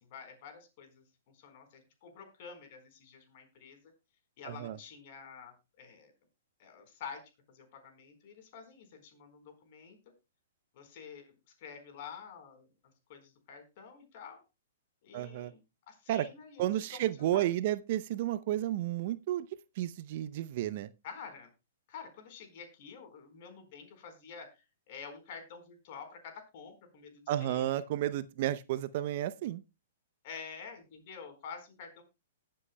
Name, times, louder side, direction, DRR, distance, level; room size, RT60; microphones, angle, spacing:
voice 1, 0.1-1.0 1.3-3.8 4.4-6.1 6.6-7.2 7.5-10.0 10.7-11.3 11.6-12.7 13.1-14.4 15.0-15.6 15.9-17.0 17.3-17.5 21.0-21.5 21.9-27.8 30.2-32.0, left 6 dB, 50° left, 4.2 m, -48 dB
voice 2, 4.5-4.8 15.1-15.5 16.1-16.3 16.6-19.5 19.8-20.9 27.3-29.6, right 13 dB, 50° right, 0.6 m, -32 dB
20.5 x 7.6 x 2.2 m
figure-of-eight pair, 115°, 0 cm